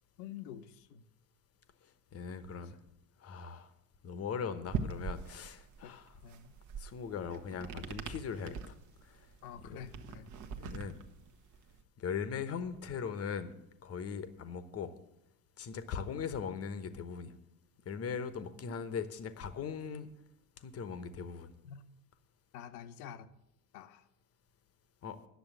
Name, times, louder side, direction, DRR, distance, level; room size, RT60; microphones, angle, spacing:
voice 1, 0.2-1.0 2.6-2.7 5.8-6.0 6.2-6.5 9.4-10.3 16.0-16.2 21.6-21.8 22.5-23.3 23.7-24.1, left 8 dB, 65° left, 12 dB, 1.0 m, -48 dB
voice 2, 2.1-2.8 3.2-3.7 4.0-6.1 6.8-8.7 9.1-9.2 9.6-9.8 10.6-11.0 12.0-13.6 13.8-14.9 15.6-17.4 17.8-20.1 20.6-21.5 25.0-25.2, left 6 dB, 30° left, 12 dB, 1.1 m, -39 dB
sound 1, 4.7-11.8, right 6 dB, 40° right, 1.1 m, -42 dB
10.5 x 6.7 x 7.9 m, 0.84 s
hypercardioid pair, 100°, 47 cm